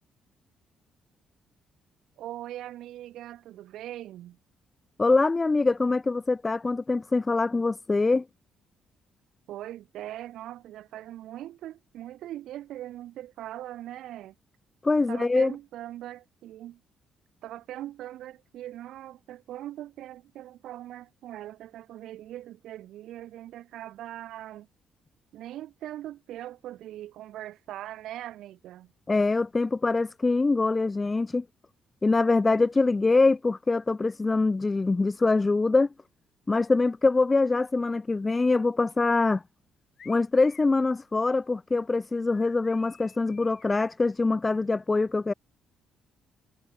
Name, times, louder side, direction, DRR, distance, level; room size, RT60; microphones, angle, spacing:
voice 1, 2.2-4.4 9.5-14.3 15.1-16.8 17.4-24.7 25.3-28.9, right 13 dB, 75° right, 2.1 m, -41 dB
voice 2, 5.0-8.2 14.8-15.5 29.1-31.4 32.0-35.9 36.5-39.4 40.1-45.3, left 3 dB, 15° left, 0.8 m, -24 dB
sound 1, 40.0-40.8 42.3-43.8, left 7 dB, 40° left, 4.9 m, -53 dB
cardioid pair, 160°, 0 cm